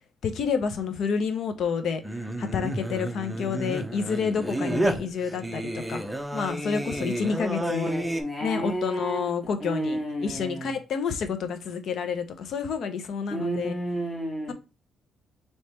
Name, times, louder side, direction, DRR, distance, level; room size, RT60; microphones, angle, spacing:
voice 1, 0.2-6.0 6.3-7.9 8.4-13.7 14.5-14.6, left 6 dB, 65° left, 0.7 m, -29 dB
Singing, 2.0-8.2, right 1 dB, 5° right, 0.6 m, -30 dB
voice 2, 7.6-9.3 9.6-10.7 13.3-14.5, right 1 dB, 15° left, 1.7 m, -31 dB
3.2 x 3.1 x 4.3 m
cardioid pair, 90°, 0 cm